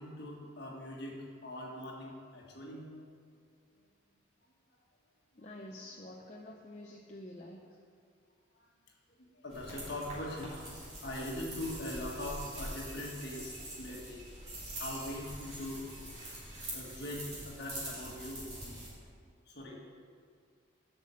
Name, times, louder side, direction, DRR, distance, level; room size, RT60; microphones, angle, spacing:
voice 1, 0.0-2.9 5.3-5.5 8.6-8.7 9.3-14.2 14.7-16.0 16.7-18.5 19.5-19.8, left 1 dB, 55° left, -2 dB, 1.6 m, -42 dB
voice 2, 5.4-7.6, left 1 dB, 35° left, -2 dB, 0.6 m, -48 dB
sound 1, 9.5-18.9, right 1 dB, 35° right, 2.8 m, -44 dB
7.7 x 5.8 x 7.5 m, 2.1 s
head